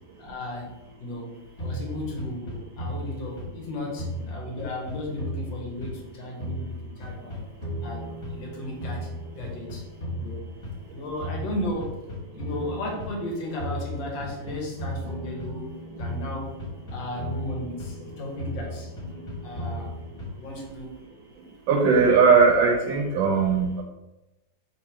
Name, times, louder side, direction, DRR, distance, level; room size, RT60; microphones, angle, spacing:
voice 1, 0.2-0.7 1.0-7.5 7.8-9.9 10.2-10.4 10.9-12.0 12.3-16.6 16.9-18.9 19.4-19.9 20.3-20.9, left 1 dB, 75° left, -1 dB, 1.7 m, -35 dB
sound 1, 1.6-3.7 4.0-6.1 6.4-8.5 8.8-10.9 11.2-13.2 13.6-15.7 16.0-18.1 18.4-20.5, equal, 50° left, 1.9 m, -35 dB
sound 2, 7.6-11.5 12.5-20.3, right 1 dB, 50° right, 0.4 m, -44 dB
voice 2, 21.7-23.7, right 5 dB, 85° right, 0 dB, 1.4 m, -19 dB
3.7 x 2.9 x 4.8 m, 1.0 s
omnidirectional pair, 2.1 m